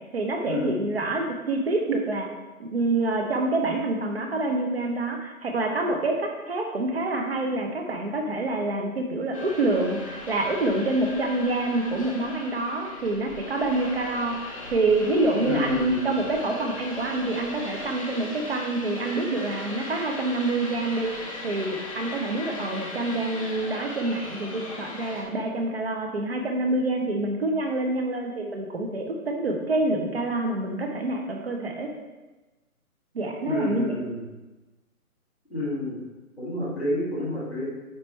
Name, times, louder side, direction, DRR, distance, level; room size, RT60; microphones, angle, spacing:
voice 1, 0.1-2.3 2.6-21.1 21.4-31.9 33.1-33.9, right 2 dB, 45° right, 2 dB, 0.9 m, -27 dB
sound 1, 9.3-25.2, left 2 dB, 25° left, 0.7 m, -38 dB
voice 2, 15.4-16.1 33.4-34.2 35.5-36.0 36.4-37.7, left 2 dB, ahead, -17 dB, 0.9 m, -29 dB
9.0 x 4.2 x 3.2 m, 1.1 s
hypercardioid pair, 165°, 44 cm